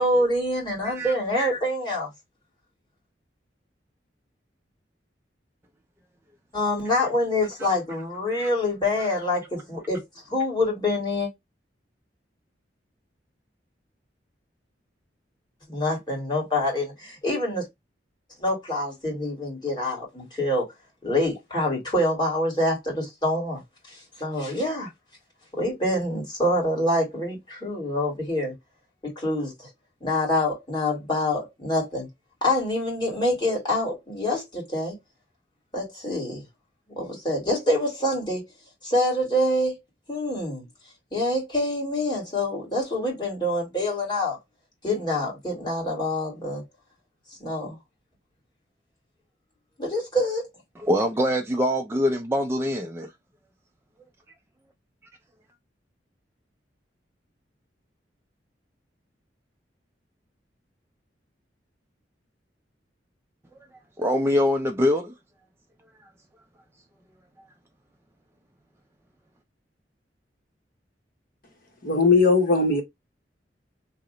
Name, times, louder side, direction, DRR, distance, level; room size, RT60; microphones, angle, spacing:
voice 1, 0.0-2.1 6.5-10.0 10.3-11.3 15.7-17.6 18.4-20.7 21.0-23.6 23.9-24.9 25.6-28.5 29.0-29.5 30.0-32.1 32.4-35.0 35.7-36.4 36.9-38.4 38.8-39.7 40.1-40.7 41.1-44.4 44.8-46.6 47.4-47.8 49.8-50.5, left 1 dB, 25° left, 1.7 m, -26 dB
voice 2, 0.8-1.1 8.4-8.5 50.8-53.1 64.0-65.1, left 1 dB, 15° right, 0.3 m, -24 dB
voice 3, 71.8-72.8, left 4 dB, 50° left, 1.0 m, -19 dB
2.8 x 2.0 x 3.7 m
head